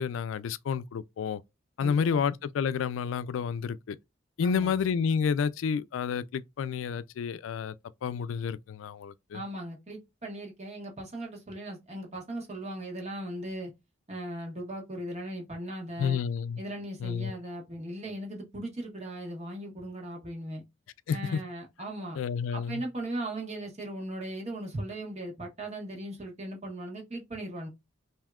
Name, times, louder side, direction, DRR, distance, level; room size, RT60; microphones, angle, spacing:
voice 1, 0.0-1.4 1.8-4.0 4.4-7.7 8.0-9.4 16.0-16.6 17.0-17.3 21.1-21.4 22.2-22.8, left 6 dB, 90° left, 0.3 m, -30 dB
voice 2, 1.8-2.2 4.4-4.7 9.3-13.7 14.1-16.2 16.6-20.6 21.1-22.2 22.5-27.7, right 1 dB, 35° right, 1.2 m, -38 dB
3.5 x 2.7 x 2.3 m
head